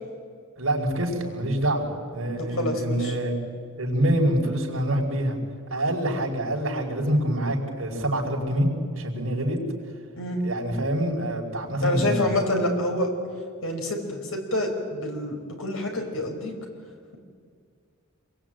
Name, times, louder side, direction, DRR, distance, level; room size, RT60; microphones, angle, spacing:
voice 1, 0.6-3.3 3.8-5.4 5.7-8.7 9.0-9.6 10.4-12.3, right 1 dB, 70° right, -1 dB, 5.0 m, -26 dB
voice 2, 2.5-3.2 10.2-10.4 11.8-13.1 13.6-16.6, left 1 dB, 70° left, 3 dB, 5.0 m, -27 dB
27.0 x 22.5 x 9.1 m, 2.1 s
head